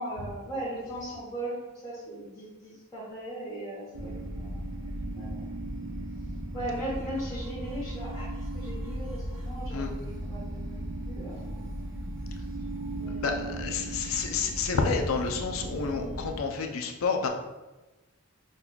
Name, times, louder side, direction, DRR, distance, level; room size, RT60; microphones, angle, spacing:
voice 1, 0.0-5.5 6.5-12.1 12.9-13.6 14.0-14.1, right 1 dB, 15° left, -10 dB, 1.0 m, -39 dB
sound 1, 3.9-16.4, right 1 dB, 65° right, 0.8 m, -36 dB
voice 2, 13.2-17.3, left 5 dB, 75° left, 4 dB, 0.5 m, -29 dB
5.3 x 2.3 x 2.3 m, 1.1 s
head